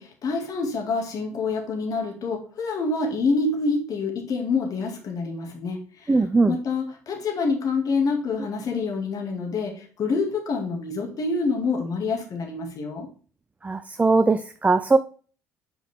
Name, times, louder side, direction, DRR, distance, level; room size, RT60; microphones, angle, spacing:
voice 1, 0.0-6.1 6.5-13.1, left 4 dB, 45° left, 2 dB, 2.1 m, -27 dB
voice 2, 6.1-6.6 13.6-15.0, right 3 dB, 15° right, 11 dB, 0.5 m, -20 dB
8.2 x 5.0 x 3.6 m, 0.40 s
figure-of-eight pair, 55°, 8 cm